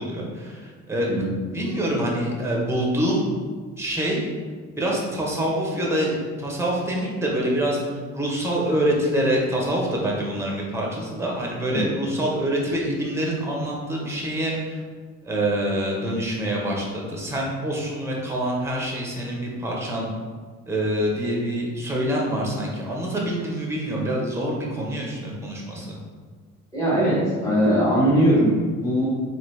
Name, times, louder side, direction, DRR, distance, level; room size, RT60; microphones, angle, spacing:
voice 1, 0.0-1.1 1.5-3.2 3.8-4.3 4.8-7.8 8.1-14.8 15.2-20.1 20.7-26.0, right 1 dB, 10° right, -2 dB, 0.9 m, -26 dB
voice 2, 26.7-29.1, equal, 10° left, -9 dB, 1.3 m, -20 dB
3.9 x 3.1 x 3.2 m, 1.5 s
cardioid pair, 120°, 30 cm